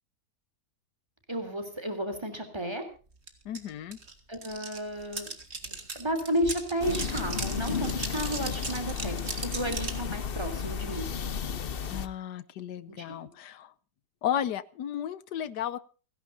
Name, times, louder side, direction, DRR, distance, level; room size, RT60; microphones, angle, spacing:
voice 1, 1.3-2.8 4.3-5.3 5.9-11.1 12.9-13.0, equal, 15° right, 7 dB, 3.4 m, -32 dB
sound 1, 3.3-3.4 3.5-10.0, right 3 dB, 40° right, 2.3 m, -38 dB
voice 2, 3.4-4.0 11.9-13.7 14.2-15.8, left 10 dB, 80° left, 16 dB, 1.4 m, -34 dB
sound 2, 6.8-12.1, left 6 dB, 45° left, 0.8 m, -33 dB
29.5 x 11.0 x 2.7 m, 0.37 s
omnidirectional pair, 1.8 m